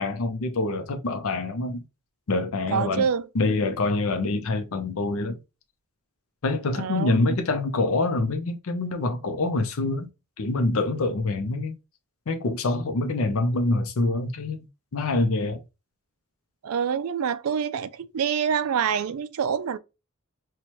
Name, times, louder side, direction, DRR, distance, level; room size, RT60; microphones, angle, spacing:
voice 1, 0.0-1.8 2.3-3.1 3.3-5.4 6.4-10.1 10.4-11.8 12.3-14.7 14.9-15.6, left 2 dB, 75° left, 0.5 m, -25 dB
voice 2, 2.7-3.3 6.7-7.2 16.6-19.8, right 7 dB, 80° right, 0.4 m, -26 dB
4.3 x 2.2 x 2.9 m
head